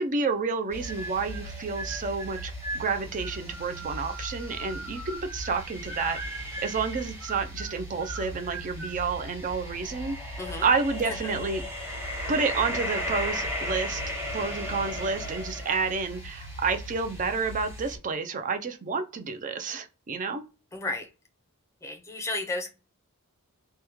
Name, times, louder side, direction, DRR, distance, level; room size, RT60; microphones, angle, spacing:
voice 1, 0.0-6.2 6.6-11.6 12.3-20.4, right 4 dB, 35° right, 0.4 m, -30 dB
sound 1, 0.7-18.0, equal, 10° right, 1.0 m, -36 dB
sound 2, 0.8-1.4 1.7-5.6 5.9-6.8 7.2-9.0, right 2 dB, 85° right, 0.8 m, -40 dB
voice 2, 20.7-21.1 21.8-22.7, left 2 dB, 15° left, 0.6 m, -33 dB
3.0 x 2.1 x 3.5 m
head